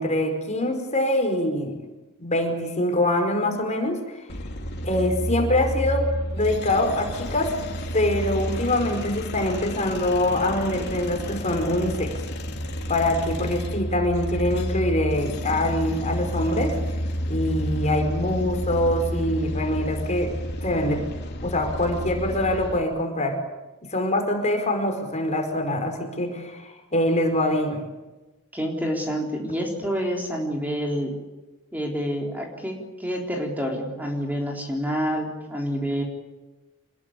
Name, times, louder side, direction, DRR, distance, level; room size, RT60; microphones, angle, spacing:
voice 1, 0.0-1.7 2.2-4.3 4.8-6.1 6.3-7.5 7.9-12.1 12.9-16.8 17.3-20.3 20.6-21.1 21.4-23.4 23.8-27.8, left 1 dB, 35° left, 5 dB, 5.0 m, -24 dB
sound 1, 4.3-22.8, equal, 50° left, 3.3 m, -30 dB
voice 2, 28.5-31.1 31.7-36.0, equal, 10° right, 0 dB, 3.8 m, -28 dB
27.0 x 21.0 x 8.5 m, 1.1 s
head